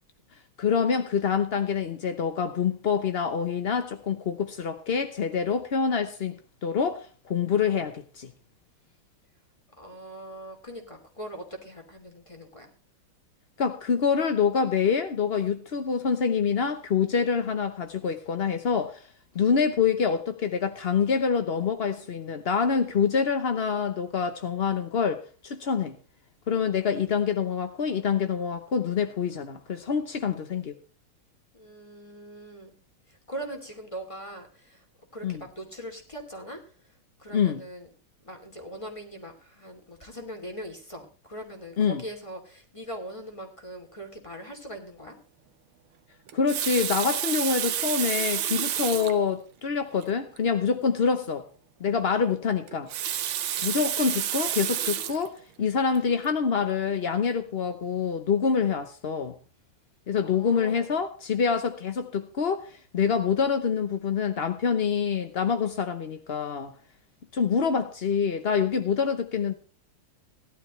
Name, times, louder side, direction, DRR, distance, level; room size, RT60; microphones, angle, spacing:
voice 1, 0.6-8.3 13.6-19.0 19.3-26.0 26.5-30.8 35.2-35.4 37.3-37.6 41.8-42.0 46.3-51.4 51.8-52.9 53.6-59.3 60.1-66.7 67.3-69.5, left 6 dB, 55° left, 0.6 m, -26 dB
voice 2, 9.8-12.7 31.5-32.7 33.3-34.8 35.1-36.6 37.2-37.9 38.2-45.2 53.5-53.8 60.2-60.9, right 1 dB, 15° left, 2.9 m, -41 dB
Water tap faucet, 46.3-49.2 50.0-50.1 50.4-50.5 52.7-55.3 55.9-56.2, right 10 dB, 75° right, 1.7 m, -29 dB
17.5 x 12.0 x 3.2 m
omnidirectional pair, 2.3 m